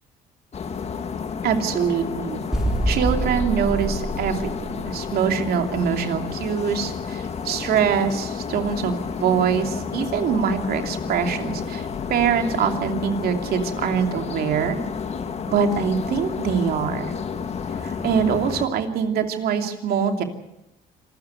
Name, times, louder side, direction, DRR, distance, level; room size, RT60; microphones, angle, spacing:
sound 1, 0.5-18.7, left 6 dB, 40° left, 1.8 m, -31 dB
voice 1, 1.4-2.4 2.9-4.4 4.8-14.8 15.5-17.1 17.8-20.2, right 7 dB, 65° right, 5 dB, 2.8 m, -24 dB
sound 2, 2.5-5.2, right 1 dB, 5° right, 3.7 m, -26 dB
26.0 x 13.5 x 8.1 m, 0.90 s
cardioid pair, 110°, 17 cm